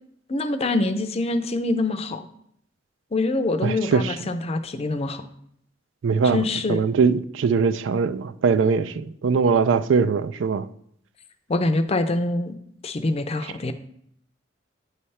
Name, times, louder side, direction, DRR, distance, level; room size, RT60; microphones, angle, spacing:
voice 1, 0.3-2.3 3.1-5.2 6.3-6.8 11.5-12.6 12.8-13.7, left 2 dB, 30° left, 0.5 m, -25 dB
voice 2, 3.6-4.1 6.0-6.4 6.7-10.7, right 5 dB, 80° right, 0.4 m, -21 dB
9.2 x 3.3 x 5.5 m
head